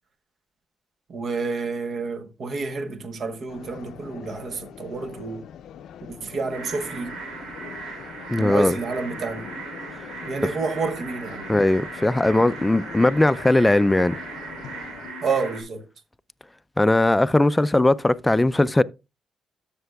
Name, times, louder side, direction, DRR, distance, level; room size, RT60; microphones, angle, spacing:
voice 1, 1.1-5.5 6.1-7.2 8.4-9.5 10.2-11.5 15.2-15.9, right 4 dB, 55° right, 1.0 m, -29 dB
sound 1, 3.5-15.1, left 9 dB, 75° left, 0.5 m, -43 dB
sound 2, 6.5-15.6, right 3 dB, 85° right, 3.2 m, -37 dB
voice 2, 8.3-8.8 11.5-14.2 16.8-18.8, left 2 dB, 10° left, 0.4 m, -19 dB
12.5 x 6.8 x 2.3 m
cardioid pair, 90°, 0 cm